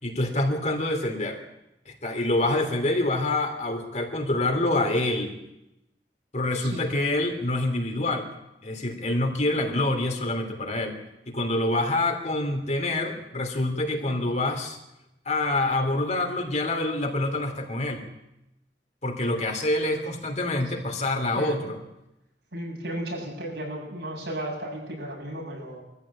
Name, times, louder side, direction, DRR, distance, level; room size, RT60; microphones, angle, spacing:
voice 1, 0.0-1.4 1.9-5.4 6.3-8.3 8.6-11.0 11.3-14.8 15.2-18.1 19.0-21.8, left 2 dB, 40° left, 4 dB, 3.1 m, -26 dB
voice 2, 22.5-25.8, right 1 dB, 75° right, -1 dB, 7.8 m, -34 dB
23.0 x 14.5 x 8.8 m, 0.89 s
head